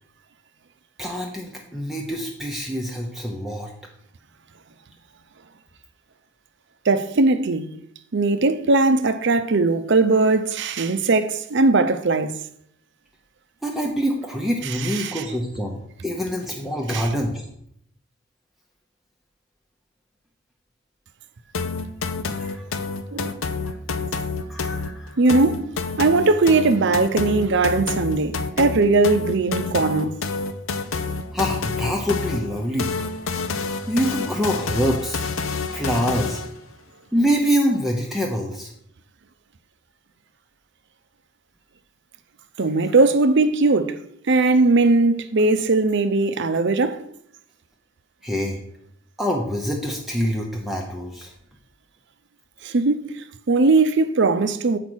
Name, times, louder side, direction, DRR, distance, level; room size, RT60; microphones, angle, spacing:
voice 1, 1.0-3.7 13.6-17.4 22.4-22.6 23.6-23.7 24.5-25.2 31.3-32.9 33.9-35.2 35.7-36.4 37.1-38.7 48.2-48.6 49.2-51.3, equal, ahead, 0.8 m, -25 dB
voice 2, 6.9-7.7 8.1-12.4 14.6-15.2 16.9-17.0 23.1-23.4 25.2-25.7 26.0-30.3 42.6-44.0 44.3-47.0 52.6-54.8, right 3 dB, 60° right, 0.6 m, -19 dB
sound 1, 21.5-36.6, left 4 dB, 75° left, 0.6 m, -28 dB
7.2 x 5.1 x 6.2 m
head